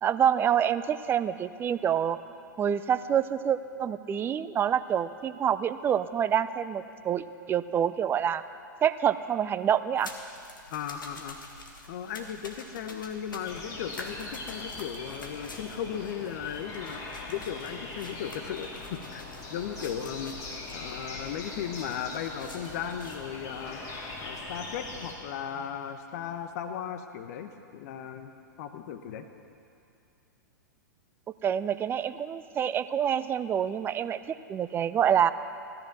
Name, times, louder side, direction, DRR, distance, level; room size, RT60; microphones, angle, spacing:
voice 1, 0.0-2.2 2.6-8.4 8.8-10.1 31.4-34.2 34.5-35.3, right 9 dB, 20° right, 13 dB, 0.5 m, -27 dB
sound 1, 10.0-23.2, left 2 dB, 80° left, 1.9 m, -47 dB
voice 2, 10.7-11.4 11.9-20.3 20.7-23.8 24.2-28.3 28.6-29.3, left 8 dB, 50° left, 7 dB, 1.1 m, -36 dB
sound 2, 13.4-25.1, left 3 dB, 30° left, 3.0 m, -41 dB
17.0 x 13.5 x 6.1 m, 2.6 s
figure-of-eight pair, 105°, 11 cm